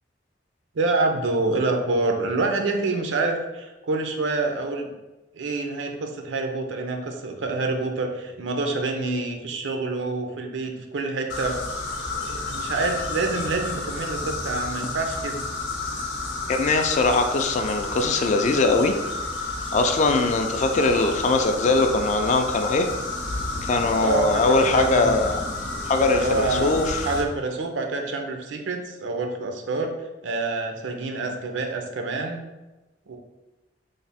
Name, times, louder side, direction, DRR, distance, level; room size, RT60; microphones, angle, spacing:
voice 1, 0.8-4.9 5.3-11.6 12.1-15.4 24.0-25.2 26.1-26.8 27.0-29.9 30.2-32.4 33.1-33.2, right 3 dB, 80° right, 3 dB, 0.5 m, -27 dB
sound 1, 11.3-27.2, left 3 dB, 85° left, 0.6 m, -31 dB
voice 2, 16.5-18.9 19.7-22.9 23.6-25.4 25.9-27.1, left 3 dB, 40° left, 6 dB, 0.3 m, -21 dB
3.2 x 2.0 x 4.0 m, 1.1 s
head